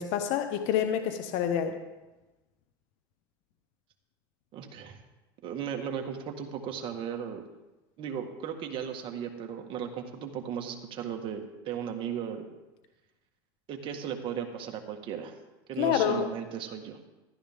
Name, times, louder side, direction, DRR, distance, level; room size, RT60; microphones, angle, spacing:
voice 1, 0.0-1.7 15.8-16.2, left 9 dB, 60° left, 7 dB, 1.1 m, -27 dB
voice 2, 4.5-5.0 5.4-7.4 8.0-12.5 13.7-15.4 15.7-17.0, right 8 dB, 45° right, 4 dB, 1.7 m, -36 dB
14.0 x 12.0 x 3.7 m, 1.1 s
supercardioid pair, 115°, 12 cm